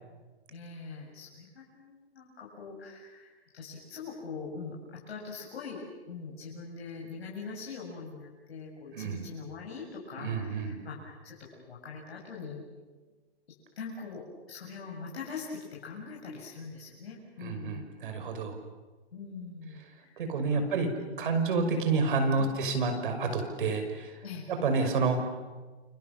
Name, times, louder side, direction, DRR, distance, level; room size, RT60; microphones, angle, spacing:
voice 1, 0.5-12.6 13.8-17.9 19.1-20.2 20.5-20.7 21.1-21.4 24.2-24.4, left 5 dB, 70° left, -3 dB, 7.5 m, -43 dB
voice 2, 8.9-9.3 10.2-10.8 17.4-18.6 20.2-20.9 21.2-24.2 24.6-25.6, right 4 dB, 55° right, 6 dB, 5.8 m, -29 dB
29.5 x 26.5 x 7.4 m, 1.3 s
hypercardioid pair, 165°, 32 cm